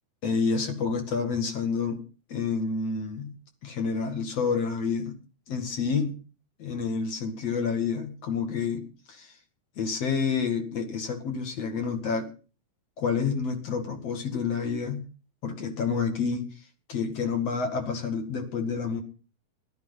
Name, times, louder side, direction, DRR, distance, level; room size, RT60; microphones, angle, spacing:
voice 1, 0.2-2.0 2.3-3.3 3.6-5.1 5.5-6.2 6.6-9.3 9.8-12.3 13.0-15.0 15.4-16.5 16.9-19.0, left 5 dB, 50° left, 5 dB, 3.0 m, -29 dB
14.5 x 12.0 x 5.7 m, 0.36 s
omnidirectional pair, 3.9 m